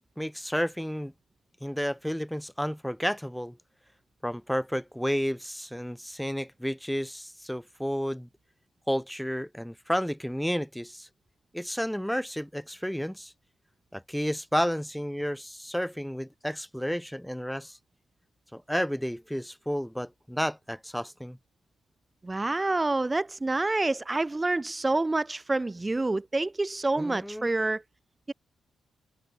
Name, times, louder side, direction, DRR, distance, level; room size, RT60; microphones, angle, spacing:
voice 1, 0.2-1.1 1.6-3.6 4.2-8.3 8.9-11.1 11.5-13.3 13.9-17.8 18.5-21.4 27.0-27.5, equal, ahead, 2.2 m, -31 dB
voice 2, 22.2-27.8, right 2 dB, 25° right, 0.6 m, -27 dB
supercardioid pair, 55°, 0 cm